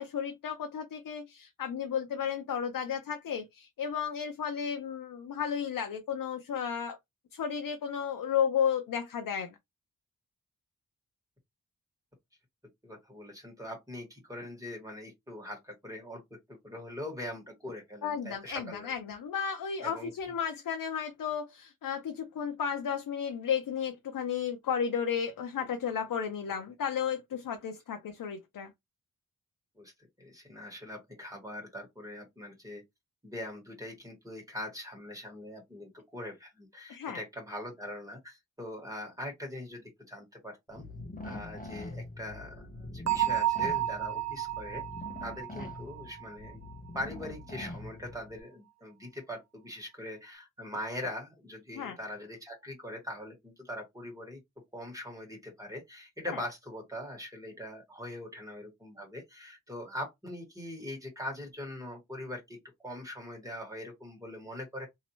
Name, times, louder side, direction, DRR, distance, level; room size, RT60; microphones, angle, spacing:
voice 1, 0.0-7.0 7.3-9.6 18.0-28.7 36.9-37.2 51.7-52.0 56.3-56.4, left 7 dB, 75° left, 0.6 m, -33 dB
voice 2, 12.8-18.9 19.8-20.1 26.5-26.6 29.8-29.9 30.2-32.8 33.2-40.8 41.2-44.8 45.2-46.6 46.9-54.4 54.7-64.9, left 1 dB, 10° right, 1.8 m, -42 dB
sound 1, 40.7-48.4, left 2 dB, 25° left, 0.9 m, -44 dB
Bell, 43.1-46.7, right 13 dB, 55° right, 0.5 m, -32 dB
3.0 x 2.8 x 2.9 m
wide cardioid pair, 125°, 34 cm